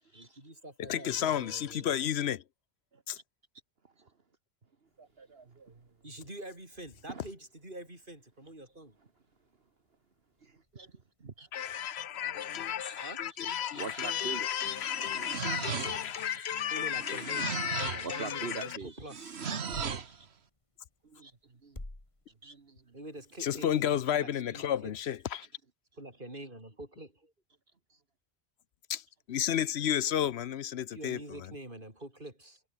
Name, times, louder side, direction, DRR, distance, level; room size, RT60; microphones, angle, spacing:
voice 1, 0.1-1.9 6.0-8.9 13.0-13.2 16.7-17.5 17.9-19.4 22.9-24.9 26.0-27.3 30.9-32.6, right 1 dB, 55° right, 6.4 m, -46 dB
voice 2, 0.8-2.4 3.1-3.2 11.5-18.8 23.4-25.5 28.9-31.2, left 10 dB, 85° left, 1.0 m, -32 dB
sound 1, 4.8-23.4, left 1 dB, 30° left, 3.1 m, -58 dB
voice 3, 5.0-5.9 7.1-7.2 10.4-11.5 12.8-13.2 13.4-16.6 17.1-20.3 21.0-21.8 22.4-23.0 27.9-28.0, right 4 dB, 70° right, 2.0 m, -46 dB
sound 2, 14.6-16.2 16.9-18.1 19.1-20.1, right 6 dB, 85° right, 1.6 m, -37 dB
omnidirectional pair, 1.1 m